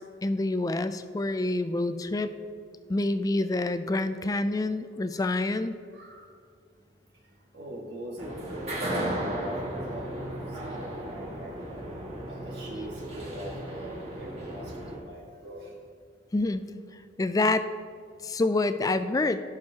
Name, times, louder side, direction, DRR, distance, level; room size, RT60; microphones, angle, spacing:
voice 1, 0.2-2.4 2.9-5.7 16.3-16.6 17.2-17.7 18.2-19.4, left 2 dB, 20° left, 11 dB, 0.3 m, -27 dB
voice 2, 5.1-5.4 5.9-6.3 7.5-11.8 12.3-15.7, equal, 70° right, -3 dB, 1.8 m, -42 dB
sound 1, 8.2-15.0, right 1 dB, 35° right, 1.9 m, -35 dB
16.0 x 6.4 x 2.9 m, 2.2 s
head